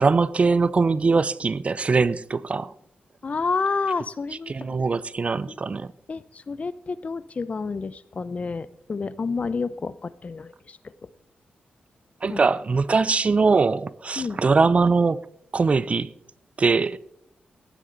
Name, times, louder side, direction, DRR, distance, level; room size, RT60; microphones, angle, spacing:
voice 1, 0.0-2.7 4.5-5.9 12.2-15.3 15.5-16.1 16.6-17.0, right 4 dB, 40° right, 0.5 m, -21 dB
voice 2, 3.2-4.5 5.5-5.6 6.1-10.8 12.3-12.4 14.2-14.4, left 4 dB, 40° left, 0.7 m, -29 dB
15.5 x 11.0 x 4.0 m
cardioid pair, 85°, 3 cm